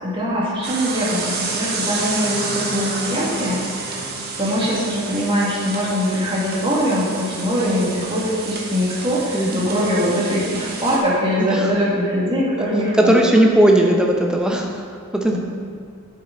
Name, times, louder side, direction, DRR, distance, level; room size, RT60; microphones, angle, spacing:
voice 1, 0.0-4.0 4.4-13.2 15.3-15.4, equal, 25° right, -6 dB, 2.0 m, -22 dB
sound 1, 0.6-11.0, right 3 dB, 45° right, 1.1 m, -29 dB
voice 2, 9.3-9.7 11.4-11.6 13.0-14.7 15.1-15.4, right 1 dB, 5° right, 0 dB, 0.7 m, -16 dB
9.1 x 7.5 x 3.9 m, 2.1 s
head